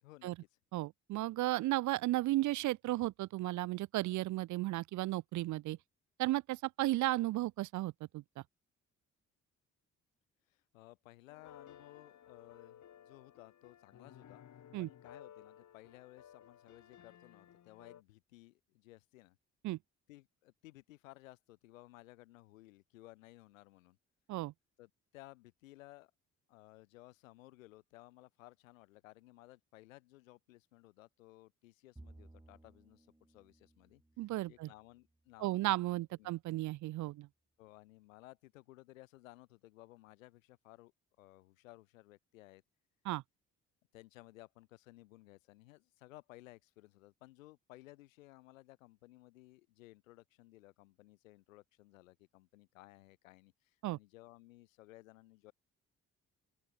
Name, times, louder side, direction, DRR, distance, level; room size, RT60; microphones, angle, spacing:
voice 1, 0.0-0.5 10.5-14.4 14.8-19.4 20.1-24.0 24.8-26.1 26.5-35.6 35.9-36.3 37.6-40.9 41.2-42.6 43.9-55.5, left 18 dB, 75° left, 1.5 m, -58 dB
voice 2, 0.7-5.8 6.2-8.4 14.7-14.9 19.6-19.8 24.3-24.5 34.2-34.7 35.4-37.3 43.1-43.2 53.8-54.0, right 17 dB, 50° right, 0.6 m, -34 dB
sound 1, 11.3-18.0, left 10 dB, 45° left, 2.1 m, -57 dB
Bowed string instrument, 32.0-35.5, right 1 dB, 10° right, 3.5 m, -60 dB
open air
figure-of-eight pair, 40°, 40 cm